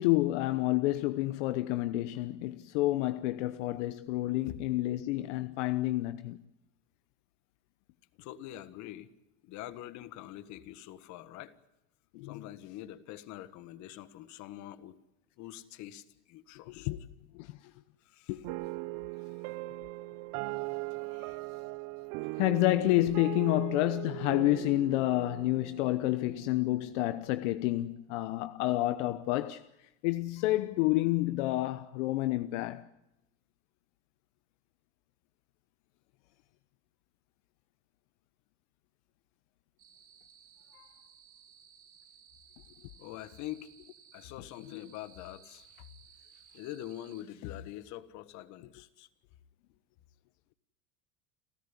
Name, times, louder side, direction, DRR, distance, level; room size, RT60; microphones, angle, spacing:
voice 1, 0.0-6.4 12.1-12.4 16.7-17.0 17.3-17.6 18.3-18.5 22.4-29.6 30.0-32.9 40.7-40.9 44.7-44.9, left 17 dB, 75° left, 1.0 m, -29 dB
voice 2, 8.2-9.1 9.4-11.6 12.2-15.0 15.4-16.9 18.0-18.4 19.2-19.5 21.0-21.4 43.0-43.8 44.1-45.9 46.3-49.1, left 13 dB, 50° left, 1.6 m, -45 dB
sound 1, 18.4-27.0, right 23 dB, 55° right, 0.8 m, -39 dB
sound 2, 39.8-47.2, right 7 dB, 40° right, 3.3 m, -59 dB
29.5 x 13.5 x 9.9 m
supercardioid pair, 135°, 35 cm